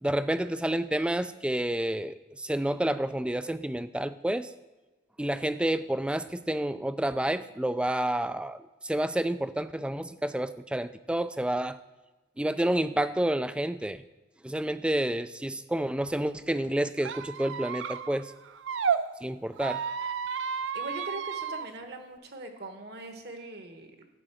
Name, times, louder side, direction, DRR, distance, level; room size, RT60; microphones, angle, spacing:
voice 1, 0.0-4.5 5.2-11.8 12.4-14.0 14.4-18.3 19.2-19.8, right 1 dB, 5° right, 12 dB, 0.3 m, -29 dB
Squeak, 17.0-19.0 19.5-21.7, right 7 dB, 80° right, 0.5 m, -32 dB
voice 2, 20.7-24.1, right 2 dB, 55° right, 5 dB, 1.3 m, -41 dB
11.5 x 3.9 x 7.7 m, 1.2 s
head